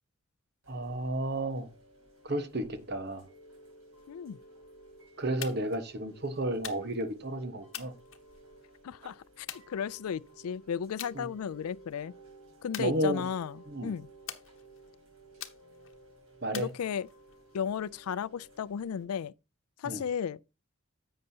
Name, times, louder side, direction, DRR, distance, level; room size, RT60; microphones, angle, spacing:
Chime / Rain, 0.6-19.0, right 2 dB, 70° right, 5.7 m, -56 dB
voice 1, 0.7-1.7 2.2-3.3 5.2-7.9 9.0-9.1 11.1-11.3 12.8-13.3 13.7-13.9 16.4-16.7 19.8-20.0, right 1 dB, 50° right, 1.3 m, -32 dB
voice 2, 4.1-4.4 8.8-12.1 12.6-14.1 16.5-17.1 17.5-19.3 19.8-20.4, left 7 dB, 90° left, 0.4 m, -34 dB
sound 1, 5.4-5.8 6.6-7.1 7.7-8.7 9.5-10.3 11.0-11.2 11.6-11.9 12.7-13.5 14.3-14.9 15.4-16.0 16.5-17.3, left 11 dB, 60° left, 1.0 m, -44 dB
10.5 x 7.8 x 2.8 m
head